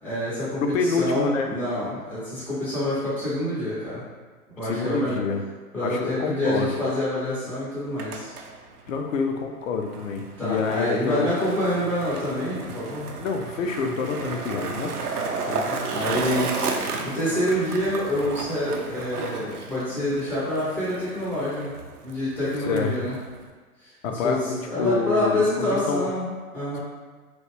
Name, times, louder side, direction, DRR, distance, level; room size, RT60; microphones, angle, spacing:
voice 1, 0.0-4.0 4.6-5.2 5.7-8.3 10.4-13.1 15.5-15.6 15.9-16.5 17.0-21.7 22.0-23.2 24.1-26.8, left 1 dB, 5° left, -11 dB, 0.4 m, -27 dB
voice 2, 0.6-1.5 4.6-5.4 5.8-6.7 8.9-11.3 13.2-15.0 22.7-22.9 24.0-26.1, left 4 dB, 60° left, 4 dB, 0.5 m, -27 dB
Skateboard, 7.8-23.5, right 4 dB, 80° right, 0.5 m, -33 dB
3.1 x 2.3 x 3.1 m, 1.4 s
figure-of-eight pair, 110°, 45 cm